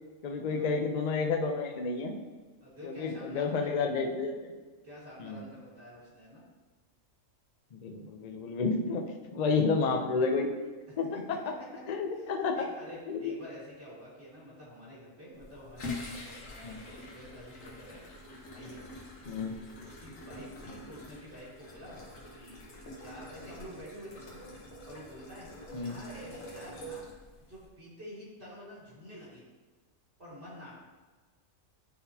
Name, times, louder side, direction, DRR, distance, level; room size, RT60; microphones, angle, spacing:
voice 1, 0.2-2.1 2.8-4.5 5.2-5.4 7.7-9.0 9.3-10.5 11.0-11.2 11.9-12.5 13.1-13.3 16.6-16.8 19.3-19.5 25.7-26.0, left 4 dB, 50° left, 3 dB, 0.5 m, -30 dB
voice 2, 2.6-3.8 4.8-6.4 10.9-11.2 11.6-11.7 12.1-18.0 18.4-18.9 19.3-22.0 22.3-24.6 24.8-25.5 25.8-27.1 27.4-29.4 30.2-30.7, equal, 55° right, -8 dB, 2.1 m, -48 dB
sound 1, 15.3-27.7, left 1 dB, 75° left, 1.4 m, -46 dB
9.4 x 3.9 x 2.8 m, 1.3 s
omnidirectional pair, 1.4 m